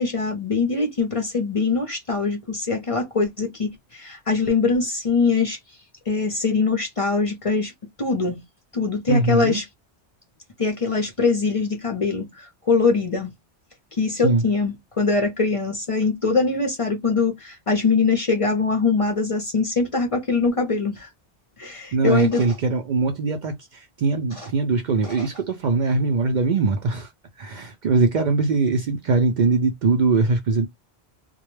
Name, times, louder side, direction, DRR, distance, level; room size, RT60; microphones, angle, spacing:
voice 1, 0.0-5.6 6.1-7.7 8.0-8.4 8.7-9.7 10.6-13.3 14.0-21.1 21.6-22.5 24.3-24.5 25.0-25.3, left 4 dB, 40° left, 0.6 m, -23 dB
voice 2, 9.1-9.6 14.2-14.4 21.9-23.5 24.0-27.1 27.4-30.7, right 3 dB, 55° right, 0.5 m, -21 dB
2.2 x 2.1 x 3.0 m
omnidirectional pair, 1.1 m